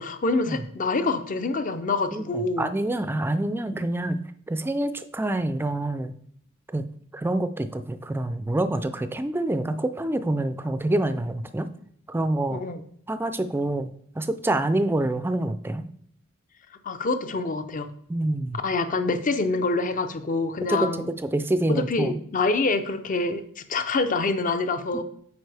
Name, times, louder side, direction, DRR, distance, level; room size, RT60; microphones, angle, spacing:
voice 1, 0.0-2.7 12.5-12.8 16.8-17.9 18.6-21.1 21.7-25.0, left 3 dB, 40° left, 10 dB, 0.5 m, -26 dB
voice 2, 2.1-4.2 4.5-6.1 6.7-6.8 7.1-11.7 12.1-12.6 13.1-13.9 14.2-15.8 18.1-18.6 20.7-20.9 21.2-22.2, right 1 dB, 10° right, 10 dB, 0.3 m, -26 dB
7.9 x 4.8 x 3.3 m, 0.65 s
head